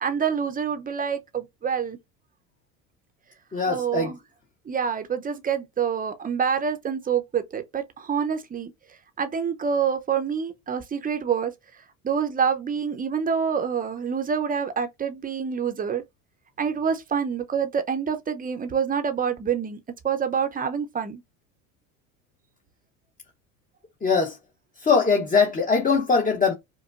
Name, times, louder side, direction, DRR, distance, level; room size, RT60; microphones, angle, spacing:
voice 1, 0.0-2.0 3.7-4.2 4.7-8.7 9.2-11.5 12.0-16.0 16.6-19.8 20.0-21.2, right 7 dB, 20° right, 0.7 m, -26 dB
voice 2, 3.5-4.1 24.0-24.3 24.8-26.5, left 5 dB, 20° left, 0.9 m, -21 dB
4.9 x 2.2 x 2.5 m
hypercardioid pair, 85°, 43 cm